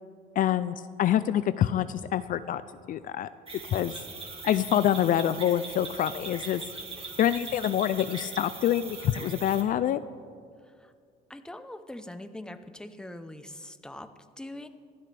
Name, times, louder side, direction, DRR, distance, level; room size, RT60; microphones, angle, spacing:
voice 1, 0.4-2.6 2.9-3.3 3.7-3.9 4.4-6.6 7.2-10.0, left 11 dB, 55° left, 13 dB, 0.4 m, -26 dB
sound 1, 3.5-9.6, right 4 dB, 35° right, 2.0 m, -41 dB
voice 2, 11.3-14.7, left 1 dB, 5° left, 9 dB, 0.8 m, -42 dB
26.5 x 12.0 x 3.4 m, 2.2 s
cardioid pair, 110°, 17 cm